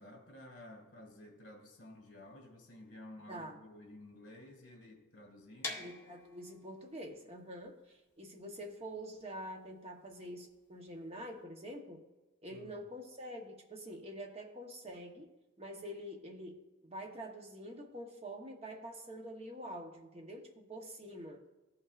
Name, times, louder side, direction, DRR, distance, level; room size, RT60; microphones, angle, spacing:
voice 1, 0.0-5.8 12.5-12.8, left 1 dB, 55° left, 0 dB, 2.2 m, -53 dB
voice 2, 3.3-3.6 5.8-12.1 12.4-15.3 15.6-21.4, equal, 30° right, 2 dB, 0.9 m, -46 dB
sound 1, 5.6-11.4, left 2 dB, 10° left, 0.9 m, -48 dB
15.0 x 5.6 x 2.4 m, 1.1 s
head